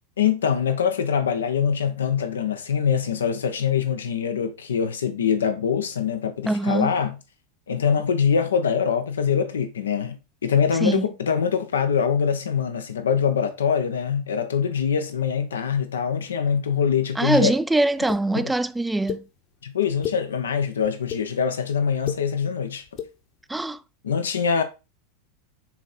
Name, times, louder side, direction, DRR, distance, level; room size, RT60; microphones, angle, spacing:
voice 1, 0.2-7.2 7.7-10.2 10.4-17.5 18.3-18.5 19.6-22.8 24.0-24.6, left 7 dB, 90° left, 1.0 m, -23 dB
voice 2, 6.5-6.9 10.8-11.0 17.2-19.2 23.5-23.8, right 2 dB, 5° right, 0.4 m, -23 dB
sound 1, 18.1-18.2 19.1-19.2 19.8-20.2 20.8-21.2 21.9-22.2 22.9-23.1, left 10 dB, 50° left, 1.2 m, -31 dB
6.1 x 3.7 x 4.3 m
hypercardioid pair, 100°, 0 cm